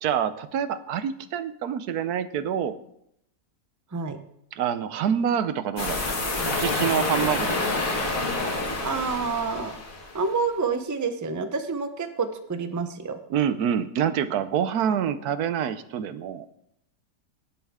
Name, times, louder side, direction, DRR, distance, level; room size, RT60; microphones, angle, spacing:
voice 1, 0.0-2.8 4.5-6.1 6.5-8.1 13.3-16.5, right 8 dB, 85° right, 12 dB, 1.2 m, -27 dB
sound 1, 5.8-10.2, left 2 dB, 60° left, 2.2 m, -28 dB
voice 2, 8.8-9.8 10.1-13.2, right 4 dB, 20° right, 8 dB, 0.5 m, -28 dB
17.5 x 7.6 x 3.6 m, 0.75 s
omnidirectional pair, 1.6 m